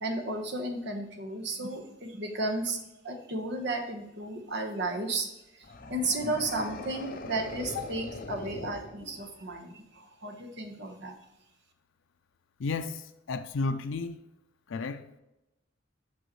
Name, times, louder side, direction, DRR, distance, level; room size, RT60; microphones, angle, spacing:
voice 1, 0.0-2.8 3.0-5.3 5.9-11.1, right 2 dB, 65° right, 1.2 m, -33 dB
sound 1, 5.6-9.5, left 2 dB, 50° left, 0.7 m, -41 dB
voice 2, 12.6-14.2 14.7-15.2, left 4 dB, 90° left, 0.4 m, -33 dB
6.4 x 6.0 x 3.1 m
head